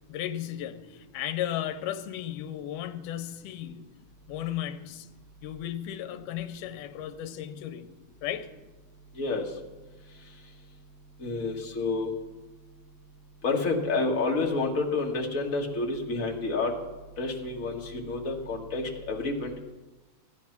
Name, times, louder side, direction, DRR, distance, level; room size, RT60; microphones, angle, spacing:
voice 1, 0.1-4.0 4.3-5.1 5.4-7.9 8.2-8.5, left 11 dB, 80° left, 2.3 m, -35 dB
voice 2, 11.2-12.1 13.4-16.7 17.2-19.6, left 3 dB, 35° left, 1.4 m, -29 dB
15.0 x 10.0 x 5.9 m
omnidirectional pair, 3.7 m